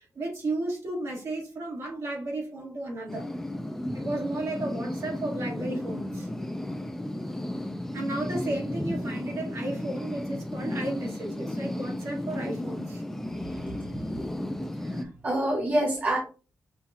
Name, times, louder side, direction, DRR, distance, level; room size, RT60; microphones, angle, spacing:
voice 1, 0.0-3.3 3.9-6.3 7.9-13.0, right 2 dB, 60° right, -2 dB, 1.7 m, -33 dB
sound 1, 3.1-15.0, left 1 dB, 5° left, 0.4 m, -34 dB
voice 2, 14.8-16.2, right 1 dB, 30° right, -1 dB, 0.7 m, -27 dB
5.6 x 2.4 x 2.7 m, 0.35 s
wide cardioid pair, 175°, 6 cm